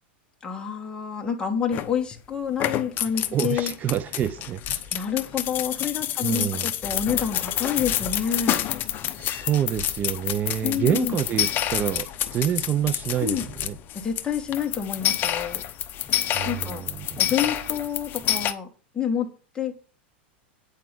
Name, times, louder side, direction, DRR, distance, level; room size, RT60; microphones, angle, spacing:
voice 1, 0.4-3.7 4.9-8.6 10.6-11.2 13.2-13.5 14.0-15.6 16.4-16.8 17.2-18.7 18.9-19.3 19.5-19.7, left 8 dB, 15° left, 2.0 m, -28 dB
sound 1, 1.7-2.2 2.5-18.5, left 11 dB, 35° left, 0.9 m, -28 dB
voice 2, 3.3-4.8 6.2-6.7 9.2-13.8 16.3-17.2, right 10 dB, 30° right, 0.6 m, -27 dB
9.2 x 4.8 x 7.7 m
supercardioid pair, 125°, 6 cm